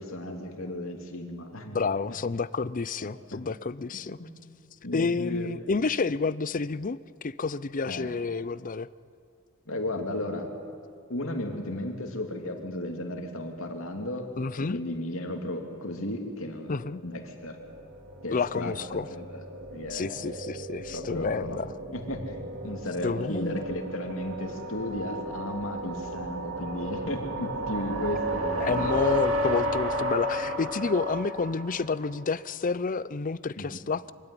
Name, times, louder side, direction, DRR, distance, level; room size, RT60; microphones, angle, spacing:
voice 1, 0.0-1.8 2.1-2.2 3.0-3.4 4.2-4.3 4.8-5.5 7.9-8.1 9.7-10.5 11.1-14.3 14.6-17.6 18.2-19.4 19.7-20.2 20.9-21.6 21.9-28.9 33.6-33.8, left 1 dB, 75° left, 3 dB, 2.9 m, -35 dB
voice 2, 1.7-4.2 4.9-8.9 14.4-14.8 16.7-17.0 18.3-19.1 19.9-21.7 23.0-23.6 28.6-34.1, left 4 dB, 40° left, 17 dB, 0.5 m, -29 dB
sound 1, 17.1-32.3, equal, 70° right, 2.2 m, -33 dB
24.5 x 16.0 x 10.0 m, 2.3 s
head